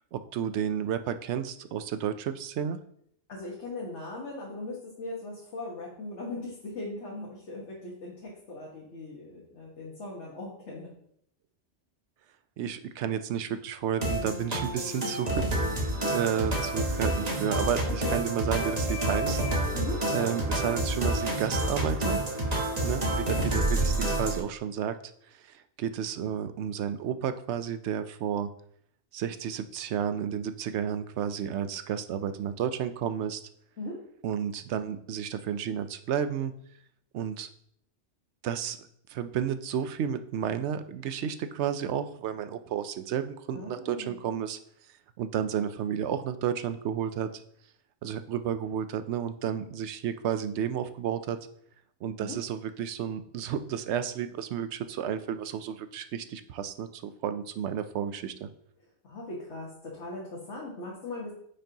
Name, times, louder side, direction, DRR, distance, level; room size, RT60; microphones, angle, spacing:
voice 1, 0.1-2.8 12.6-19.4 20.1-22.2 22.8-24.9 25.5-28.5 29.1-33.4 34.2-36.5 37.1-37.5 38.4-38.8 39.1-44.6 45.2-47.3 48.0-51.4 52.0-58.5, right 8 dB, 75° right, 11 dB, 0.8 m, -32 dB
voice 2, 3.3-10.9 18.0-18.2 19.7-20.4 22.8-23.1 33.8-34.0 43.5-44.2 52.2-52.4 59.0-61.3, left 2 dB, 75° left, -4 dB, 1.7 m, -39 dB
sound 1, 14.0-24.4, right 1 dB, 35° right, 1.3 m, -28 dB
9.0 x 5.3 x 2.8 m, 0.67 s
omnidirectional pair, 1.2 m